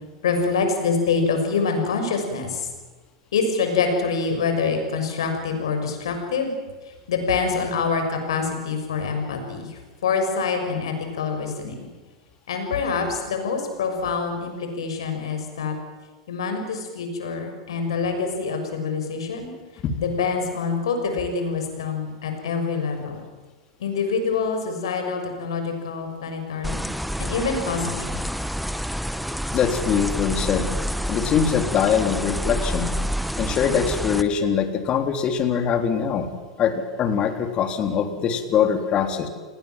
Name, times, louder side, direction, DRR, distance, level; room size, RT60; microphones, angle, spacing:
voice 1, 0.2-2.7 3.3-6.5 6.8-11.9 12.5-15.7 16.3-19.5 20.0-23.2 23.8-26.8 27.2-28.0, left 5 dB, 70° left, 5 dB, 6.6 m, -25 dB
sound 1, 26.6-34.2, equal, ahead, 1.4 m, -28 dB
voice 2, 29.5-30.7 31.1-32.9 33.4-36.3 36.6-39.3, left 7 dB, 35° left, 7 dB, 3.7 m, -22 dB
29.5 x 19.5 x 7.7 m, 1.3 s
hypercardioid pair, 90°, 3 cm